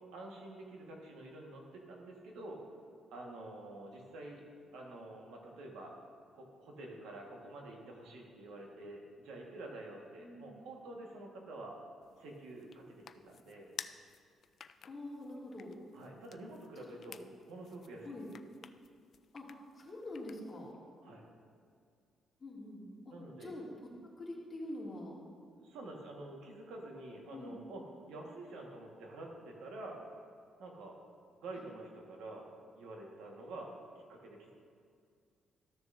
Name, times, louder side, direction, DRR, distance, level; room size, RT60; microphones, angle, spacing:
voice 1, 0.0-2.6 3.1-4.4 4.7-5.9 6.3-11.8 12.2-13.7 15.9-17.2 17.5-18.2 21.0-21.3 23.1-23.5 25.5-30.0 30.6-31.0 31.4-32.5 32.7-33.7 34.1-34.5, right 2 dB, 90° right, 0 dB, 1.4 m, -48 dB
voice 2, 10.2-10.5 14.8-15.7 16.8-17.2 18.0-18.3 19.3-20.7 22.4-23.1 23.4-23.6 24.2-25.2 27.3-27.6, left 1 dB, 30° left, -4 dB, 2.1 m, -45 dB
sound 1, 12.0-20.7, left 7 dB, 55° left, 0.3 m, -54 dB
13.5 x 6.7 x 2.6 m, 2.2 s
cardioid pair, 90°, 0 cm